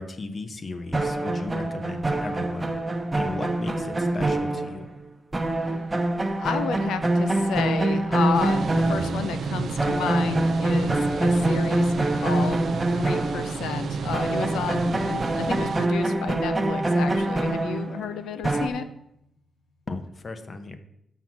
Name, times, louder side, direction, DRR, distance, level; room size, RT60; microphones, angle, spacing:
voice 1, 0.0-2.8 3.2-4.9 19.9-20.8, left 3 dB, 40° left, 8 dB, 0.8 m, -36 dB
sound 1, 0.9-5.1 5.3-9.5 9.8-13.9 14.1-18.7, right 2 dB, 20° right, 0.9 m, -25 dB
voice 2, 6.4-12.6 12.9-18.9, left 7 dB, 85° left, 10 dB, 0.6 m, -32 dB
sound 2, 8.3-15.9, right 5 dB, 65° right, 0.4 m, -32 dB
sound 3, 18.3-18.4, right 1 dB, 70° left, 3.3 m, -45 dB
6.0 x 5.7 x 6.0 m, 0.80 s
cardioid pair, 75°, 0 cm